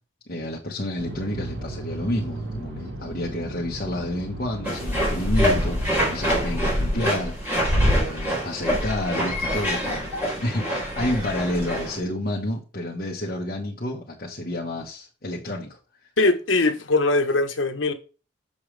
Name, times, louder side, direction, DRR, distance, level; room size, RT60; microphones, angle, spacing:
voice 1, 0.3-15.8, left 1 dB, 45° left, 1.3 m, -30 dB
sound 1, 1.0-7.1, right 1 dB, 65° right, 1.5 m, -36 dB
sound 2, 4.6-12.0, equal, 10° right, 3.9 m, -25 dB
voice 2, 16.2-17.9, left 2 dB, 80° left, 1.2 m, -21 dB
7.0 x 6.4 x 3.4 m
head